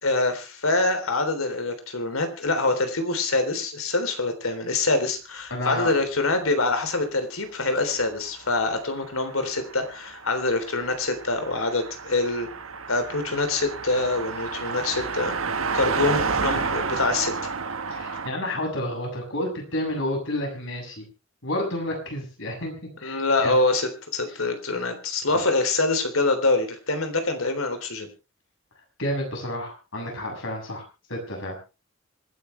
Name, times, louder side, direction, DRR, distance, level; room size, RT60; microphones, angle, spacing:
voice 1, 0.0-12.5 12.9-15.4 15.7-17.5 23.0-28.1, left 2 dB, 85° left, 8 dB, 3.6 m, -25 dB
voice 2, 5.5-5.9 16.0-16.1 17.9-21.0 21.4-22.8 23.0-23.6 25.3-25.4 29.0-30.8 31.1-31.6, left 1 dB, 65° left, 2 dB, 7.1 m, -30 dB
Car passing by, 8.2-18.3, right 5 dB, 85° right, 1.5 m, -31 dB
26.0 x 10.5 x 3.3 m, 0.31 s
head